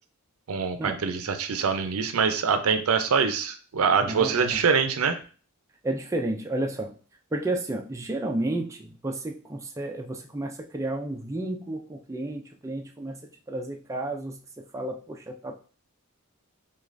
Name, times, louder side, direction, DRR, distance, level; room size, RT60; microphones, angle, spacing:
voice 1, 0.5-5.2, right 6 dB, 75° right, 9 dB, 0.5 m, -24 dB
voice 2, 4.0-4.6 5.8-6.9 7.3-13.2 13.5-15.6, right 1 dB, 15° right, 2 dB, 0.3 m, -32 dB
6.3 x 2.3 x 2.5 m, 0.39 s
head